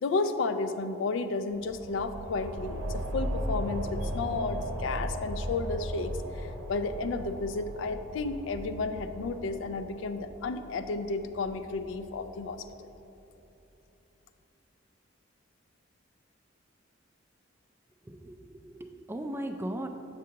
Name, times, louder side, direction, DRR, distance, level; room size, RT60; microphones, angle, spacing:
voice 1, 0.0-12.6, left 3 dB, 70° left, 10 dB, 0.3 m, -32 dB
sound 1, 1.5-12.7, equal, 85° right, 0.7 m, -37 dB
voice 2, 18.1-19.9, right 1 dB, 10° right, 5 dB, 0.3 m, -37 dB
7.4 x 6.1 x 2.9 m, 2.8 s
head